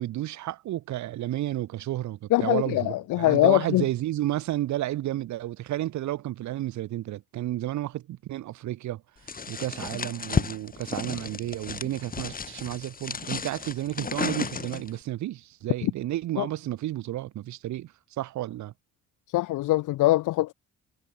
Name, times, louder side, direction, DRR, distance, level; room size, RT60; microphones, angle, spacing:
voice 1, 0.0-9.0 9.5-18.7, right 14 dB, 70° right, 0.8 m, -31 dB
voice 2, 2.3-3.8 16.4-16.5 19.3-20.5, left 17 dB, 85° left, 1.1 m, -22 dB
sound 1, 9.3-15.0, left 5 dB, 30° left, 1.5 m, -33 dB
cardioid pair, 90°, 30 cm